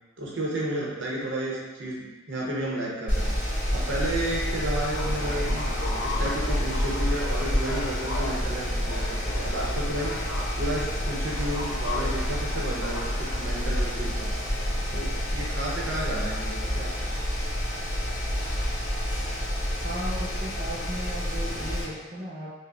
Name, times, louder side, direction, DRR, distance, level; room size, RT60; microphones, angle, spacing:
voice 1, 0.2-3.3 3.7-5.6 6.0-10.1 10.6-14.3 14.9-16.9, right 1 dB, 80° right, -3 dB, 0.7 m, -32 dB
Mechanical fan, 3.1-21.8, equal, 45° left, 0.9 m, -29 dB
sound 1, 4.9-18.7, left 2 dB, 85° left, 0.7 m, -39 dB
voice 2, 19.8-22.5, equal, 40° right, -6 dB, 0.8 m, -36 dB
4.9 x 2.0 x 2.3 m, 1.2 s
head